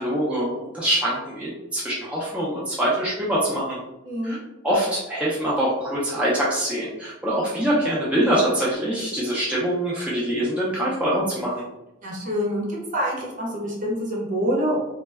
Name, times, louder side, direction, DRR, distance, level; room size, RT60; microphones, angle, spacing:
voice 1, 0.0-3.8 4.2-4.4 4.6-11.6, right 1 dB, 5° right, -7 dB, 0.4 m, -24 dB
voice 2, 4.1-4.4 12.0-12.6 12.9-14.8, equal, 40° right, -3 dB, 0.8 m, -26 dB
2.1 x 2.1 x 3.3 m, 0.98 s
head